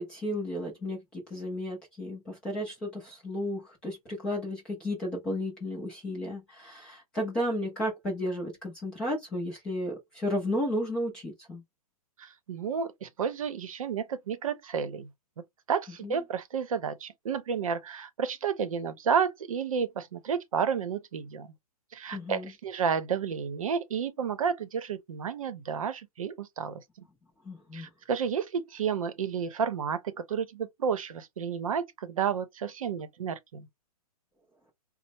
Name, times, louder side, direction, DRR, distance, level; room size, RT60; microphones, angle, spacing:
voice 1, 0.0-11.6 16.0-16.2 22.1-22.5 27.4-27.9, left 1 dB, 5° left, 0.4 m, -33 dB
voice 2, 12.2-15.1 15.7-21.5 21.9-26.8 27.7-33.7, right 6 dB, 60° right, 0.7 m, -31 dB
4.2 x 2.0 x 2.8 m
hypercardioid pair, 170°, 20 cm